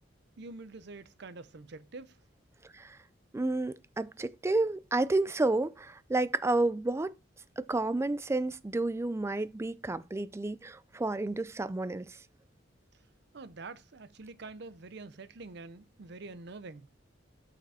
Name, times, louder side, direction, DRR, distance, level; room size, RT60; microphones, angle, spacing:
voice 1, 0.4-2.2 13.3-16.9, right 3 dB, 65° right, 0.7 m, -46 dB
voice 2, 3.3-7.1 7.6-12.2, right 2 dB, 15° right, 0.3 m, -30 dB
6.0 x 5.7 x 4.2 m
head